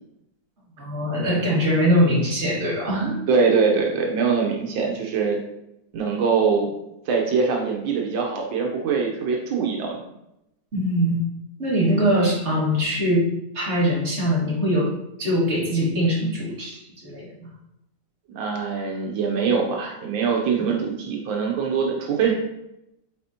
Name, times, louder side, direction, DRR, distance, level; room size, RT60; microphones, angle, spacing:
voice 1, 0.8-3.2 10.7-11.2 11.6-13.3 13.5-17.3, equal, 35° right, -6 dB, 2.2 m, -22 dB
voice 2, 3.3-5.4 5.9-6.7 7.1-10.1 11.9-12.0 18.3-22.3, right 5 dB, 85° right, 0 dB, 1.6 m, -23 dB
7.7 x 4.3 x 2.8 m, 0.86 s
omnidirectional pair, 2.0 m